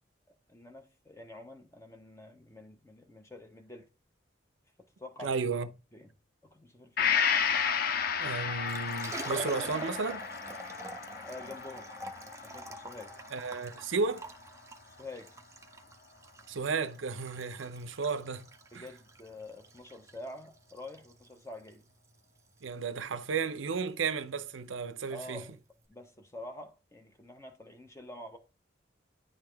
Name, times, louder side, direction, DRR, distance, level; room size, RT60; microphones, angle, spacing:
voice 1, 0.5-3.9 5.0-5.3 5.9-6.1 6.5-7.2 11.2-11.9 12.4-13.2 15.0-15.3 18.7-21.9 25.1-25.6 25.9-28.4, left 2 dB, 15° left, 0.9 m, -47 dB
voice 2, 5.2-5.7 8.2-10.3 13.3-14.3 16.5-18.5 18.7-18.9 22.6-25.4, right 5 dB, 85° right, 0.6 m, -33 dB
Gong, 7.0-14.6 15.0-15.1, left 7 dB, 50° left, 0.5 m, -33 dB
Liquid, 8.5-25.8, right 2 dB, 15° right, 0.6 m, -47 dB
10.0 x 3.5 x 3.4 m
head